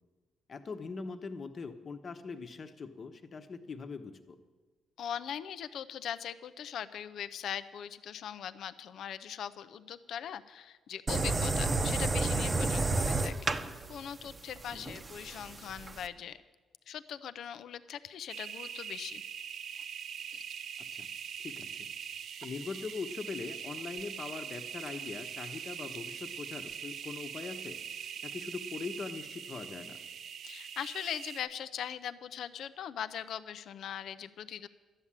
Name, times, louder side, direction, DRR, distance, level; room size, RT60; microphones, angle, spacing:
voice 1, 0.5-4.4 14.7-15.0 20.9-21.1 21.4-21.9 22.4-27.8 28.2-30.0, left 4 dB, 45° left, 8 dB, 1.1 m, -41 dB
voice 2, 5.0-16.4 16.9-19.2 30.4-34.7, left 9 dB, 70° left, 13 dB, 0.5 m, -41 dB
sound 1, 11.1-16.1, right 3 dB, 30° right, 0.8 m, -31 dB
sound 2, 18.3-31.4, right 8 dB, 65° right, 0.5 m, -42 dB
12.0 x 7.4 x 10.0 m, 1.3 s
cardioid pair, 90°, 0 cm